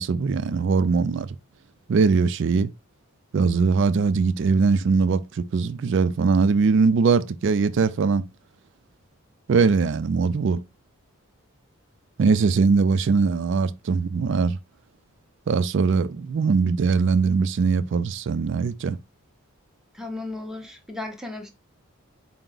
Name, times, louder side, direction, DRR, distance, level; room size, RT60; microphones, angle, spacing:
voice 1, 0.0-1.4 1.9-2.7 3.3-8.3 9.5-10.6 12.2-14.6 15.5-19.0, right 4 dB, 55° right, 0.3 m, -21 dB
voice 2, 19.9-21.5, left 2 dB, ahead, 0.5 m, -35 dB
4.4 x 2.0 x 3.8 m
head